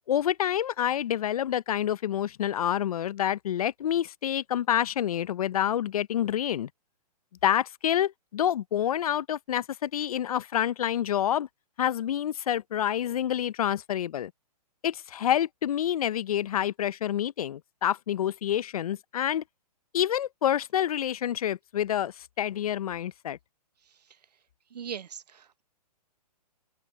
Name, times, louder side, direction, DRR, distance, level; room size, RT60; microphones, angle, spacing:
voice 1, 0.1-6.7 7.4-11.5 11.8-14.3 14.8-19.4 19.9-23.4, left 10 dB, 65° left, 0.6 m, -28 dB
voice 2, 23.9-24.2 24.7-25.6, right 8 dB, 75° right, 1.2 m, -41 dB
open air
hypercardioid pair, 140°, 21 cm